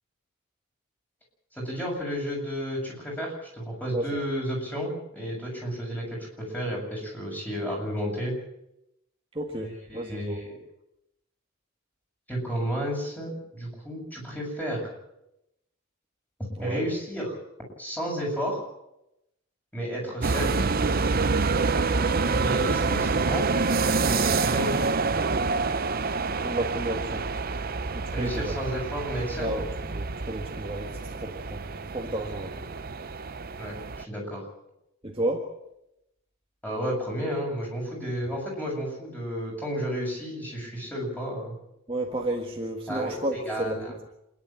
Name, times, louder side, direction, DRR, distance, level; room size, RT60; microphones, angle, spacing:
voice 1, 1.5-8.3 9.6-10.5 12.3-14.9 16.6-17.4 17.8-18.6 19.7-20.6 22.3-23.5 24.0-25.0 28.1-29.6 33.6-34.4 36.6-41.5 42.9-44.0, equal, 10° left, -2 dB, 7.4 m, -32 dB
voice 2, 9.4-10.4 16.6-16.8 26.4-27.3 27.9-28.5 29.4-31.6 31.9-32.5 35.0-35.5 41.9-43.9, right 1 dB, 25° right, 0 dB, 1.7 m, -32 dB
sound 1, 20.2-34.0, right 4 dB, 45° right, 0.7 m, -27 dB
27.0 x 11.0 x 9.0 m, 0.85 s
head